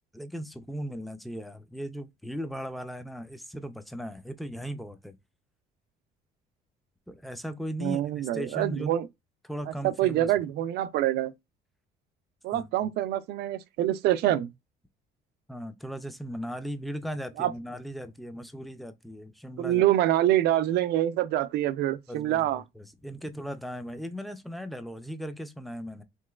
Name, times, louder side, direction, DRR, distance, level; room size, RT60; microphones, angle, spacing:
voice 1, 0.1-5.2 7.1-8.9 9.4-10.3 12.5-12.9 15.5-19.9 22.1-26.0, equal, ahead, 0.4 m, -38 dB
voice 2, 7.8-9.1 9.8-11.3 12.4-14.5 17.4-17.5 19.6-22.6, right 13 dB, 75° right, 0.4 m, -25 dB
3.0 x 3.0 x 2.3 m
cardioid pair, 110°, 17 cm